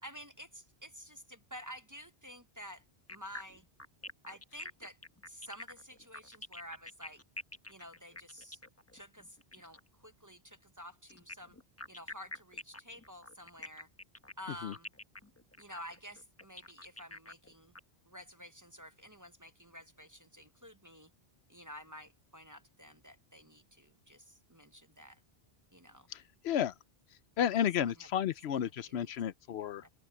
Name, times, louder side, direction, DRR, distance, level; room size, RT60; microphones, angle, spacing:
voice 1, 0.0-3.6 4.3-5.0 5.3-7.2 7.7-8.6 8.9-11.6 11.9-13.9 14.4-14.9 15.6-17.7 18.1-21.1 21.5-25.2 25.7-26.1 27.5-28.1 28.5-29.1 29.8-29.9, equal, 20° right, 0.8 m, -51 dB
sound 1, 3.1-9.9 11.1-17.8, left 2 dB, 15° left, 1.1 m, -47 dB
voice 2, 26.1-26.7 27.4-29.8, left 9 dB, 80° left, 0.9 m, -32 dB
open air
omnidirectional pair, 1.1 m